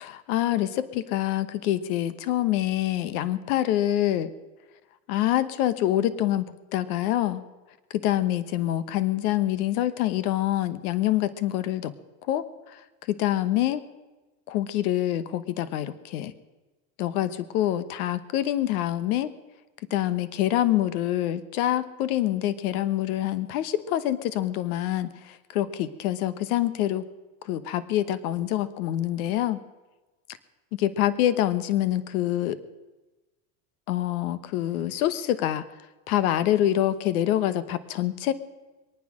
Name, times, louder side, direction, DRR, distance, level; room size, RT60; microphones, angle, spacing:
voice 1, 0.0-4.3 5.1-7.4 8.0-11.9 12.3-12.8 13.1-13.8 14.5-16.3 17.0-19.3 19.9-27.0 27.4-29.6 30.7-32.6 33.9-35.6 36.1-38.3, left 13 dB, 80° left, 14 dB, 1.1 m, -26 dB
22.5 x 9.6 x 6.4 m, 1.1 s
supercardioid pair, 105°, 44 cm